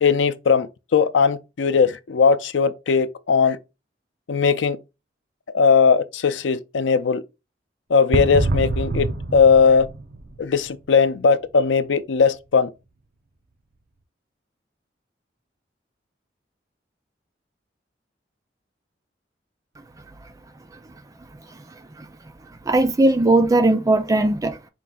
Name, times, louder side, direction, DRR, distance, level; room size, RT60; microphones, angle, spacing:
voice 1, 0.0-3.6 4.3-4.8 5.5-7.2 7.9-9.9 10.4-12.7, left 5 dB, 90° left, 0.5 m, -18 dB
sound 1, 8.1-10.8, right 2 dB, 55° right, 0.6 m, -25 dB
voice 2, 22.7-24.7, right 2 dB, 20° right, 0.4 m, -18 dB
4.5 x 2.5 x 3.8 m
head